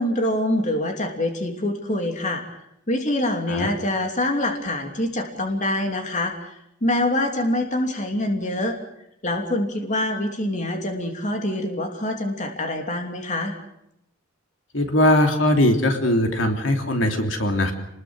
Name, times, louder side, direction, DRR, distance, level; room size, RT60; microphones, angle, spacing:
voice 1, 0.0-2.4 2.9-6.5 6.8-8.8 9.2-13.5, left 1 dB, 40° left, 3 dB, 3.0 m, -25 dB
voice 2, 14.7-17.7, left 1 dB, 75° left, 4 dB, 3.2 m, -20 dB
29.0 x 21.0 x 6.4 m, 0.78 s
head